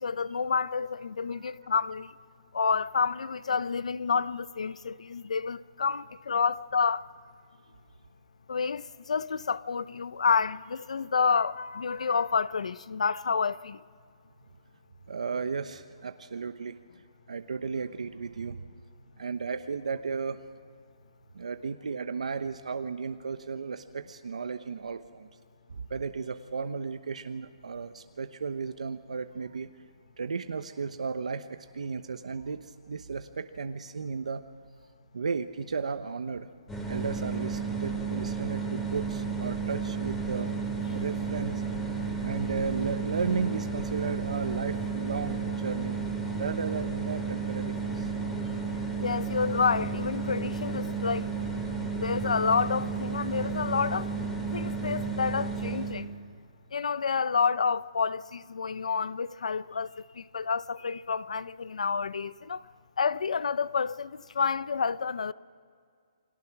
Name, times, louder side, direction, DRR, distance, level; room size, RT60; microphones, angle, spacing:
voice 1, 0.0-2.1 2.5-7.0 8.5-13.8 49.0-51.3 51.9-54.1 54.5-56.1 56.7-62.7 63.0-65.3, left 5 dB, 85° left, 0.7 m, -29 dB
voice 2, 15.1-16.8 17.3-18.7 19.2-20.4 21.3-25.3 25.7-29.7 30.2-34.4 35.1-36.5 36.9-40.5 40.9-41.6 41.9-46.0 46.4-48.1, right 5 dB, 85° right, 1.0 m, -34 dB
sound 1, 36.7-56.0, right 5 dB, 5° left, 2.6 m, -32 dB
29.0 x 21.5 x 6.0 m
hypercardioid pair, 170°, 4 cm